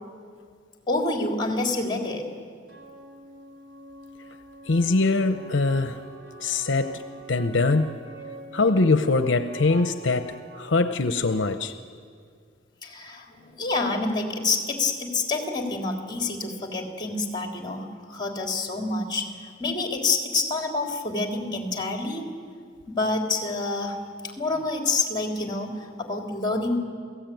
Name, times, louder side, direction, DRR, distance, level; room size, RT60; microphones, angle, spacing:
voice 1, 0.9-2.3 12.8-22.3 22.9-26.8, left 3 dB, 25° left, 2 dB, 3.3 m, -28 dB
sound 1, 2.7-10.7, right 2 dB, 70° right, 4.4 m, -44 dB
voice 2, 4.7-6.0 6.4-7.0 7.3-8.1 8.5-11.7, left 3 dB, 75° left, 9 dB, 0.8 m, -23 dB
28.5 x 17.5 x 9.2 m, 2.2 s
head